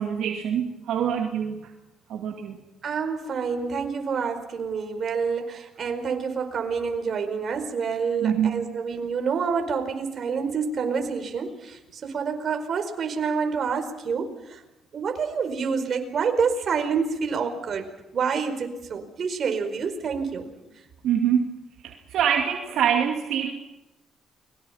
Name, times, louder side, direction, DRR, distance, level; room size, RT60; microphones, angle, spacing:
voice 1, 0.0-1.7 2.1-2.6 8.2-8.7 21.0-21.5 21.8-23.5, right 8 dB, 80° right, 1 dB, 2.5 m, -25 dB
voice 2, 2.8-14.6 14.9-20.5, right 5 dB, 55° right, 5 dB, 4.8 m, -28 dB
30.0 x 22.5 x 5.8 m, 0.96 s
cardioid pair, 90°, 0 cm